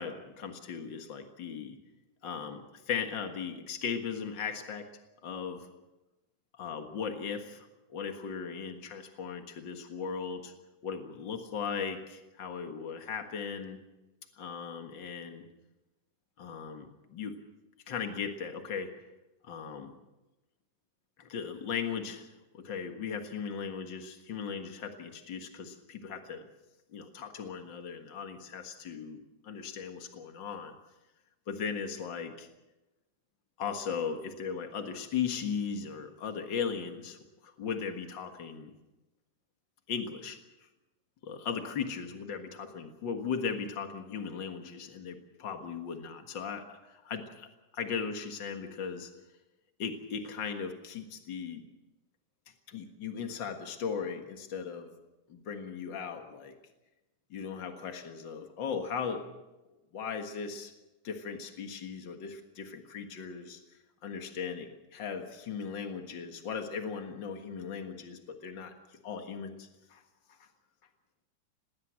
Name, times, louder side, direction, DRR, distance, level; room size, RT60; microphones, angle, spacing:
voice 1, 0.0-1.8 2.2-4.8 5.2-5.7 6.6-10.5 10.8-13.8 14.4-15.4 16.4-17.4 17.9-18.9 19.5-19.9 21.2-26.5 26.9-30.7 31.5-32.5 33.6-37.2 37.4-38.7 39.9-40.4 41.2-47.5 47.7-49.1 49.8-51.6 52.7-54.9 55.3-56.5 57.3-59.3 59.9-60.7 61.0-63.6 64.0-68.7 69.0-70.0 70.4-70.5, left 6 dB, 85° left, 6 dB, 1.0 m, -37 dB
19.5 x 18.5 x 7.6 m, 1.0 s
omnidirectional pair, 4.8 m